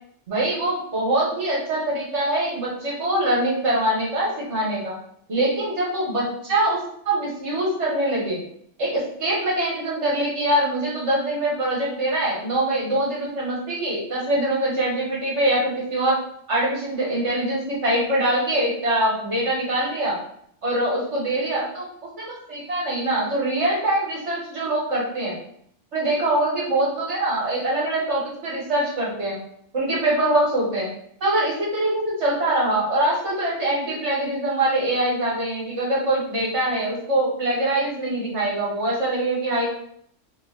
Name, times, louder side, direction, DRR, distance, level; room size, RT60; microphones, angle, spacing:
voice 1, 0.3-5.0 5.3-6.8 7.1-8.4 8.8-16.2 16.5-20.2 20.6-21.7 22.5-25.4 25.9-29.4 29.7-30.9 31.2-39.7, right 1 dB, 65° right, -5 dB, 1.6 m, -23 dB
4.6 x 2.6 x 2.9 m, 0.67 s
omnidirectional pair, 1.3 m